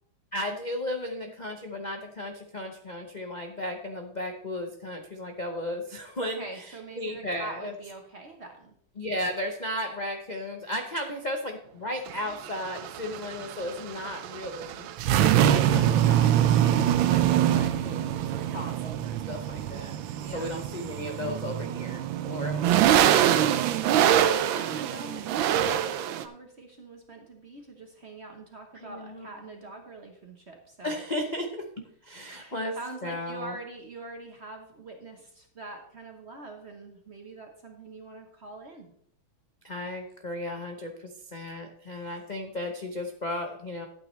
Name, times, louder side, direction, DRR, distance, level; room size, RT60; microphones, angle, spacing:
voice 1, 0.3-7.7 9.0-14.9 15.4-20.0 20.3-23.6 24.2-24.5 28.8-29.3 30.8-31.7 32.0-33.6 39.6-43.9, left 1 dB, 50° left, 3 dB, 0.5 m, -35 dB
voice 2, 6.2-8.8 20.2-20.6 23.8-31.0 32.2-38.9, right 2 dB, 40° right, 4 dB, 1.0 m, -44 dB
sound 1, 12.1-26.2, right 11 dB, 75° right, 1.4 m, -24 dB
12.5 x 8.8 x 3.2 m, 0.67 s
omnidirectional pair, 2.3 m